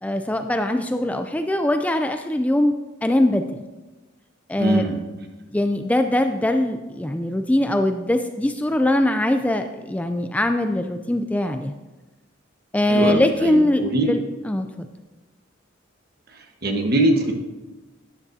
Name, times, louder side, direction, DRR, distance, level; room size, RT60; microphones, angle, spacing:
voice 1, 0.0-2.7 3.0-3.5 4.5-4.9 5.5-11.7 12.7-14.7, left 1 dB, 5° left, 6 dB, 0.3 m, -22 dB
voice 2, 4.6-5.0 12.9-14.1 16.3-17.3, right 1 dB, 50° right, 2 dB, 1.3 m, -22 dB
12.5 x 9.7 x 2.7 m, 1.2 s
head